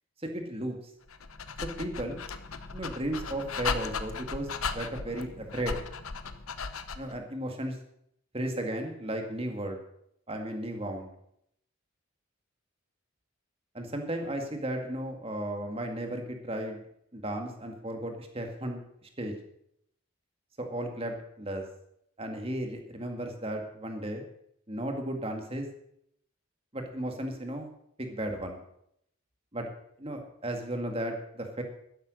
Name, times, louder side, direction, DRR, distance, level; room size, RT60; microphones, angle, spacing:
voice 1, 0.2-0.8 1.6-2.2 2.7-5.8 7.0-7.8 8.3-9.8 10.3-11.1 13.7-16.8 17.1-19.4 20.6-21.6 22.2-24.3 24.7-25.7 26.7-27.7 28.0-28.6 29.5-29.7 30.0-31.6, right 1 dB, 25° right, 4 dB, 2.0 m, -35 dB
Dog, 1.1-7.2, left 5 dB, 85° left, 1.0 m, -36 dB
12.5 x 11.5 x 6.5 m, 0.72 s
head